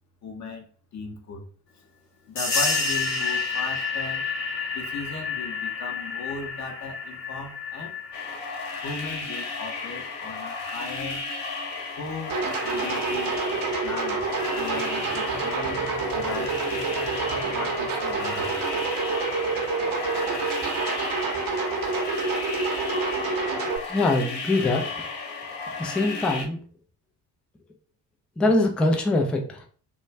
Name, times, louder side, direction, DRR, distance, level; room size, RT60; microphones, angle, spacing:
voice 1, 0.2-0.7 0.9-1.4 2.3-4.3 4.7-8.0 8.8-11.2 11.9-12.4 12.6-13.4 13.8-14.2 14.5-15.8 16.1-16.7 17.5-18.6, left 4 dB, 35° left, 3 dB, 0.7 m, -37 dB
sound 1, 2.4-10.6, left 4 dB, 85° left, 0.7 m, -30 dB
sound 2, 8.1-26.4, left 3 dB, 60° left, 1.0 m, -34 dB
sound 3, 12.3-23.8, right 4 dB, 45° right, 0.7 m, -28 dB
voice 2, 23.9-25.0 25.8-26.6 28.4-29.7, left 2 dB, ahead, 2 dB, 0.3 m, -23 dB
2.3 x 2.2 x 3.2 m, 0.43 s
figure-of-eight pair, 45°, 48 cm